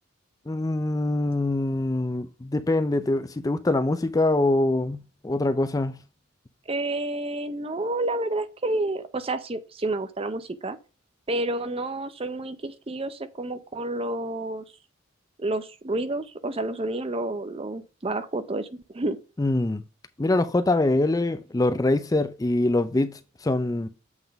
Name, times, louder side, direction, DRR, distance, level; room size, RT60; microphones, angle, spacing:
voice 1, 0.5-6.0 19.4-19.8 20.2-23.9, left 2 dB, 15° left, 0.4 m, -24 dB
voice 2, 6.7-10.8 11.3-14.6 15.4-19.2, right 2 dB, 25° right, 0.6 m, -29 dB
7.9 x 3.7 x 5.1 m
head